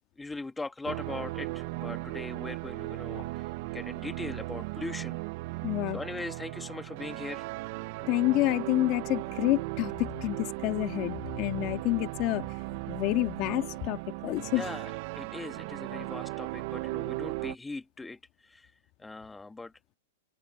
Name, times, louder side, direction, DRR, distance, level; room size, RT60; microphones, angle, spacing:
voice 1, 0.0-3.5 3.7-5.2 5.9-7.5 14.5-18.7 19.0-19.7, left 3 dB, 5° left, 1.9 m, -40 dB
sound 1, 0.9-17.6, right 22 dB, 50° right, 0.9 m, -37 dB
voice 2, 5.6-6.0 8.0-12.4 12.9-14.7, left 20 dB, 40° left, 2.1 m, -28 dB
hypercardioid pair, 145°, 0 cm